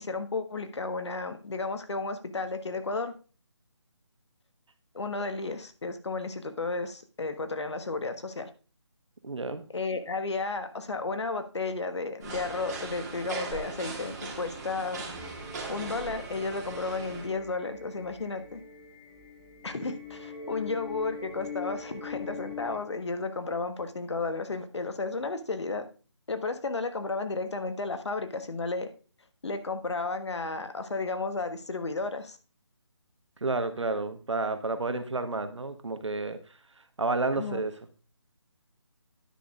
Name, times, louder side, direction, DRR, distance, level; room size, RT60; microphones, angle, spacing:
voice 1, 0.0-3.2 4.9-8.5 9.7-15.0 15.7-18.6 19.6-25.9 26.3-28.9 29.4-32.4 37.4-37.6, left 3 dB, 70° left, 9 dB, 1.3 m, -33 dB
voice 2, 9.2-9.6 33.4-36.4 37.0-37.7, right 3 dB, 80° right, 9 dB, 1.3 m, -30 dB
sound 1, 12.2-17.3, right 3 dB, 35° right, 2.7 m, -39 dB
sound 2, 15.1-22.8, left 4 dB, 10° left, 1.7 m, -42 dB
9.9 x 6.3 x 3.6 m, 0.36 s
figure-of-eight pair, 160°, 15 cm